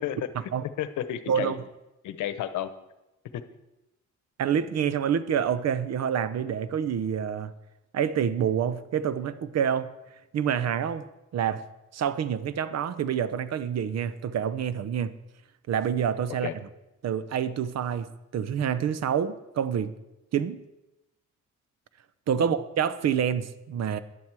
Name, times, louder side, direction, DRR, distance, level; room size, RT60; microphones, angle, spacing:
voice 1, 0.8-1.6 2.0-2.7 3.3-3.4 16.4-16.5 22.4-22.5, left 11 dB, 80° left, 12 dB, 0.9 m, -32 dB
voice 2, 4.4-7.5 7.9-9.9 10.3-11.0 11.3-11.6 11.9-15.1 15.7-16.5 17.0-18.1 18.3-19.9 20.3-20.6 22.3-24.0, right 8 dB, 60° right, 14 dB, 0.8 m, -27 dB
11.5 x 10.5 x 4.7 m, 0.95 s
cardioid pair, 90°, 30 cm